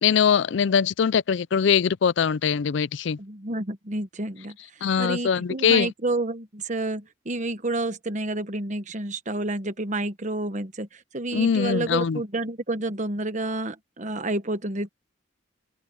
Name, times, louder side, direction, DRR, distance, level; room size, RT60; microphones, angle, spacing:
voice 1, 0.0-3.2 4.8-5.9 11.3-12.2, left 7 dB, 65° left, 0.4 m, -22 dB
voice 2, 3.2-14.9, right 2 dB, 40° right, 1.3 m, -30 dB
head